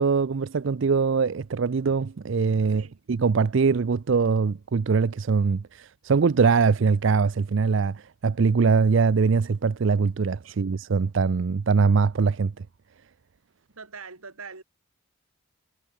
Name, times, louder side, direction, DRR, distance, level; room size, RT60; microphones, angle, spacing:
voice 1, 0.0-12.6, right 5 dB, 60° right, 0.4 m, -22 dB
voice 2, 2.6-2.9 10.4-10.6 13.8-14.6, right 5 dB, 85° right, 3.0 m, -42 dB
head